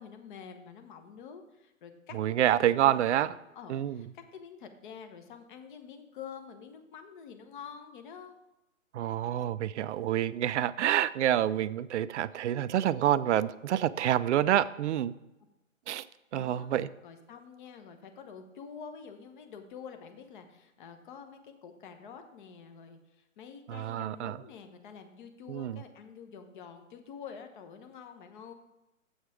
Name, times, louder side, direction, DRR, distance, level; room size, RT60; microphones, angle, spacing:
voice 1, 0.0-8.4 16.3-16.7 17.0-28.5, left 6 dB, 40° left, 7 dB, 1.0 m, -47 dB
voice 2, 2.1-3.3 3.7-4.0 8.9-15.1 15.9-16.1 16.3-16.9 23.7-24.4 25.5-25.7, right 11 dB, 60° right, 15 dB, 0.5 m, -27 dB
7.9 x 6.5 x 4.9 m, 0.94 s
hypercardioid pair, 140°, 40 cm